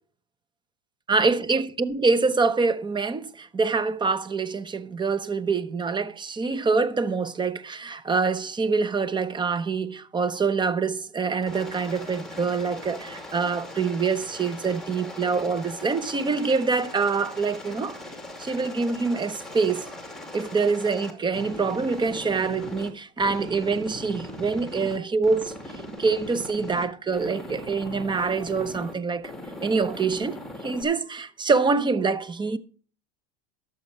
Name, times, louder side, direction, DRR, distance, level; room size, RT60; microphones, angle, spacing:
voice 1, 1.1-18.0 18.4-19.9 20.3-29.3 29.6-32.6, right 4 dB, 15° right, 0.8 m, -25 dB
Aircraft, 11.4-22.9 23.2-25.0 25.2-26.8 27.1-28.9 29.2-30.8, left 1 dB, ahead, 2.6 m, -39 dB
12.5 x 7.2 x 5.4 m
supercardioid pair, 120°, 31 cm